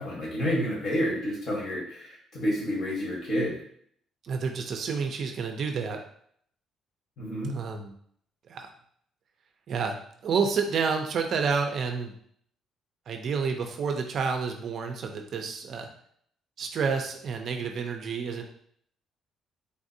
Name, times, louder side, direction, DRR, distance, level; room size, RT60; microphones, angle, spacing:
voice 1, 0.0-3.6 7.2-7.6, equal, 50° left, -2 dB, 1.1 m, -29 dB
voice 2, 4.2-6.0 7.5-7.9 8.5-8.7 9.7-10.0 10.2-12.1 13.1-15.9 16.6-18.4, right 5 dB, 50° right, 4 dB, 0.4 m, -29 dB
3.4 x 2.5 x 2.6 m, 0.64 s
cardioid pair, 150°, 0 cm